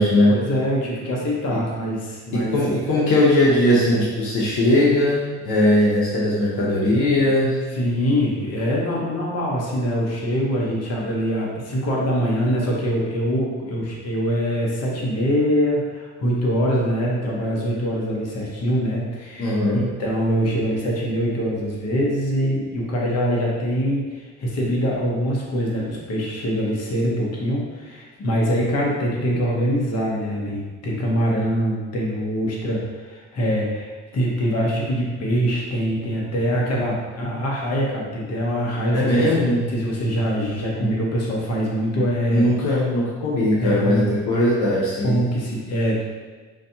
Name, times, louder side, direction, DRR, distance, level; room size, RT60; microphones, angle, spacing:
voice 1, 0.3-2.8 7.7-42.5 43.6-44.1 45.0-46.0, equal, 55° left, -3 dB, 1.1 m, -24 dB
voice 2, 2.3-7.6 19.4-19.9 38.9-39.7 40.8-40.9 41.9-42.0 42.3-45.2, left 1 dB, 80° left, -5 dB, 0.9 m, -19 dB
5.1 x 2.7 x 2.8 m, 1.4 s
cardioid pair, 90°, 30 cm